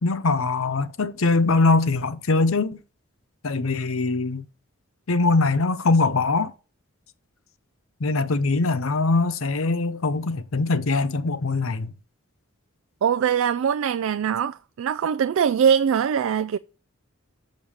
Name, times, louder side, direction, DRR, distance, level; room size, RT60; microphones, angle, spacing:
voice 1, 0.0-2.8 3.4-4.4 5.1-6.5 8.0-11.9, left 3 dB, 75° left, 0.7 m, -22 dB
voice 2, 13.0-16.6, right 8 dB, 75° right, 0.3 m, -22 dB
7.2 x 5.3 x 6.3 m
head